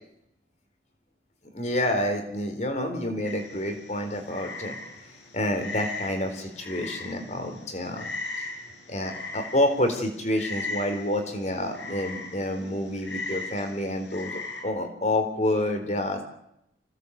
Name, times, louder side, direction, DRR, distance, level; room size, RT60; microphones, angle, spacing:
voice 1, 1.5-4.7 5.3-8.1 8.4-8.5 8.9-16.2, left 1 dB, 40° left, 6 dB, 4.2 m, -28 dB
Frog, 3.2-14.6, left 3 dB, 90° left, 7.3 m, -38 dB
25.5 x 18.0 x 8.4 m, 0.79 s
head